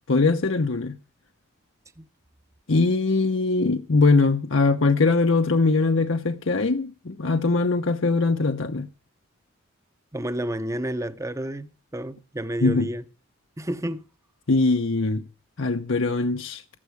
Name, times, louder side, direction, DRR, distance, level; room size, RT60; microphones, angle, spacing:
voice 1, 0.1-1.0 2.7-8.9 12.6-12.9 14.5-15.2 15.6-16.6, left 3 dB, 65° left, 0.9 m, -21 dB
voice 2, 10.1-13.0 13.6-14.1, right 1 dB, 15° right, 0.8 m, -30 dB
15.0 x 10.5 x 4.7 m
head